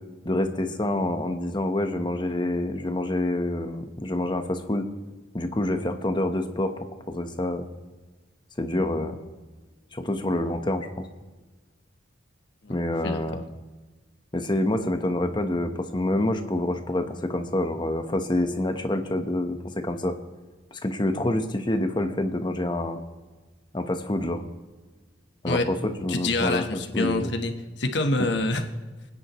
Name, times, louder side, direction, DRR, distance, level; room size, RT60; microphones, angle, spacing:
voice 1, 0.2-4.9 5.3-6.7 7.1-7.7 8.6-9.2 9.9-11.1 12.7-13.4 14.3-19.6 19.8-20.1 20.7-23.0 23.7-24.4 25.4-26.6 26.9-27.3 28.2-28.3, left 1 dB, 25° left, 6 dB, 1.0 m, -27 dB
voice 2, 12.6-13.2 25.4-25.6 26.1-27.5 27.8-28.6, left 2 dB, 65° left, 6 dB, 1.2 m, -26 dB
29.0 x 9.8 x 3.1 m, 1.3 s
head